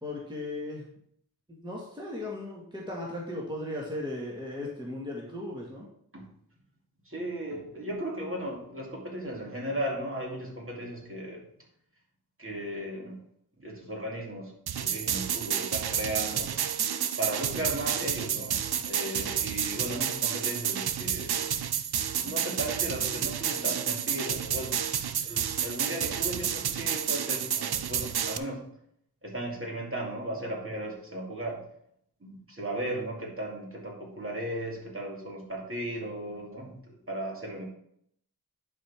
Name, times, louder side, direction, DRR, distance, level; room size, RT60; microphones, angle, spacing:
voice 1, 0.0-0.8 1.6-5.9, left 1 dB, 10° right, -4 dB, 1.8 m, -36 dB
voice 2, 7.0-11.4 12.4-13.2 13.6-14.5 14.8-16.5 17.2-21.5 22.2-24.8 25.2-28.7 29.2-31.7 32.2-37.7, right 1 dB, 35° right, -2 dB, 2.3 m, -36 dB
sound 1, 14.7-28.4, right 8 dB, 75° right, 0.6 m, -30 dB
11.0 x 4.6 x 3.5 m, 0.70 s
wide cardioid pair, 65°, 38 cm